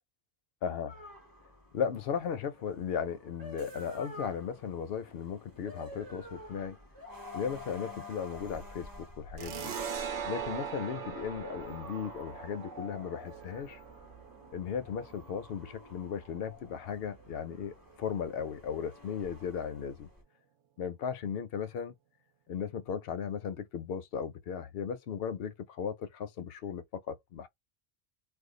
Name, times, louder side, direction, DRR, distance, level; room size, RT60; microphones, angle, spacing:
voice 1, 0.6-0.9 1.7-6.8 7.3-9.8 10.2-13.8 14.5-20.1 20.8-21.9 22.5-27.5, left 7 dB, 65° left, 0.7 m, -36 dB
sound 1, 0.9-20.2, left 2 dB, 20° right, 0.8 m, -50 dB
sound 2, 9.4-16.6, right 7 dB, 85° right, 0.9 m, -41 dB
2.5 x 2.3 x 3.6 m
omnidirectional pair, 1.2 m